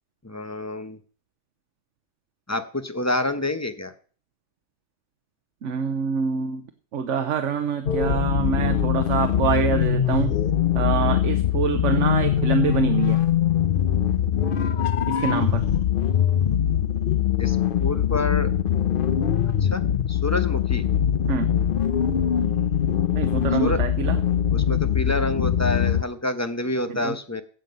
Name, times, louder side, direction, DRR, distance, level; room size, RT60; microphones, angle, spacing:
voice 1, 0.2-1.0 2.5-3.9 17.4-17.6 17.8-18.5 19.6-19.8 20.1-20.9 23.6-23.8 24.5-27.4, left 2 dB, 15° left, 9 dB, 0.8 m, -27 dB
voice 2, 5.6-6.7 6.9-10.3 10.7-13.2 15.1-15.7 21.3-21.5 23.1-24.2 26.9-27.2, right 6 dB, 85° right, 8 dB, 1.2 m, -25 dB
sound 1, 7.9-26.0, left 9 dB, 55° left, 0.8 m, -22 dB
15.5 x 7.6 x 5.3 m, 0.44 s
omnidirectional pair, 1.2 m